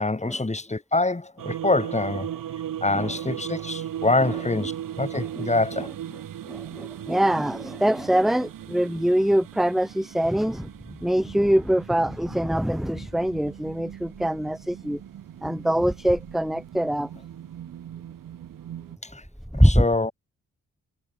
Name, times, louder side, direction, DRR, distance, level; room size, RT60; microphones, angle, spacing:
voice 1, 0.0-2.3 2.8-4.7 5.0-5.9 19.0-19.2 19.6-20.1, left 2 dB, 20° left, 6.6 m, -25 dB
sound 1, 1.4-19.0, right 10 dB, 80° right, 6.5 m, -38 dB
voice 2, 6.4-10.7 11.0-15.0 15.4-17.1 19.5-19.9, equal, ahead, 1.1 m, -23 dB
cardioid pair, 75°, 32 cm